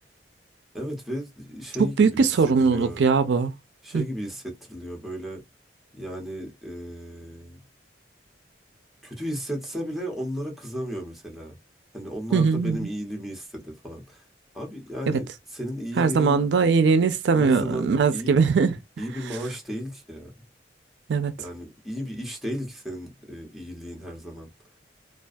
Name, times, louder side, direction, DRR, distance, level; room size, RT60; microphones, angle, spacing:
voice 1, 0.7-3.0 3.8-5.4 5.9-7.6 9.0-11.6 11.9-14.2 14.5-16.4 17.4-18.3 19.0-20.3 21.4-24.5, equal, ahead, 0.8 m, -34 dB
voice 2, 1.8-3.5 3.9-4.0 12.3-12.9 15.1-15.2 16.0-18.7 21.1-21.3, right 5 dB, 80° right, 0.4 m, -21 dB
2.4 x 2.3 x 2.4 m
head